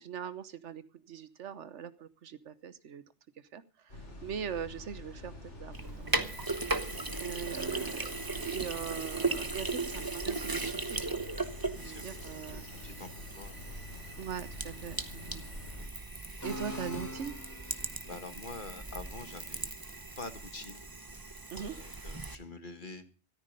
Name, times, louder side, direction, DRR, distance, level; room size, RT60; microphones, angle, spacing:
voice 1, 0.0-3.0 3.5-6.3 7.2-11.2 11.8-12.6 14.2-15.4 16.4-17.3 21.5-21.8, right 8 dB, 85° right, 14 dB, 1.3 m, -41 dB
sound 1, 3.9-15.9, left 2 dB, 80° left, 5.3 m, -47 dB
Sink (filling or washing), 5.7-22.4, right 3 dB, 20° right, 1.1 m, -37 dB
voice 2, 11.7-12.3 12.5-13.1 13.4-13.6 15.4-15.6 17.7-19.6 20.2-20.8 21.5-23.0, left 3 dB, 45° left, 9 dB, 1.8 m, -46 dB
sound 2, 16.4-18.0, left 2 dB, 15° left, 1.7 m, -42 dB
14.0 x 13.5 x 5.3 m, 0.34 s
omnidirectional pair, 1.2 m